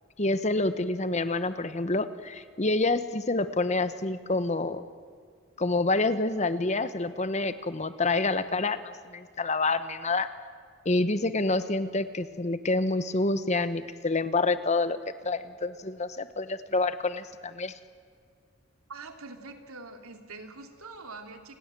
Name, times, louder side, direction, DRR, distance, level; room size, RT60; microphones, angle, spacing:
voice 1, 0.2-4.9 5.6-10.3 10.8-15.0 15.2-17.7, left 2 dB, 35° left, 12 dB, 1.0 m, -27 dB
voice 2, 18.9-21.6, right 3 dB, 90° right, 5 dB, 2.8 m, -44 dB
29.0 x 20.0 x 7.6 m, 2.1 s
head